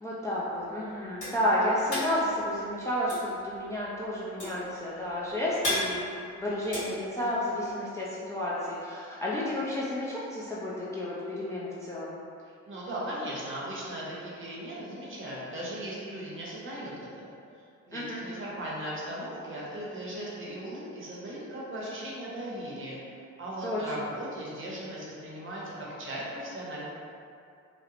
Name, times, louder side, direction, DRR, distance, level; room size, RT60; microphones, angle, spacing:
voice 1, 0.0-12.2 17.9-18.2 23.6-23.8, left 1 dB, 10° left, -8 dB, 0.3 m, -31 dB
sound 1, 0.6-7.7, left 1 dB, 70° left, 1.4 m, -35 dB
voice 2, 12.4-17.3 17.9-26.8, right 1 dB, 40° right, -5 dB, 0.7 m, -38 dB
2.8 x 2.0 x 2.4 m, 2.4 s
cardioid pair, 90°, 30 cm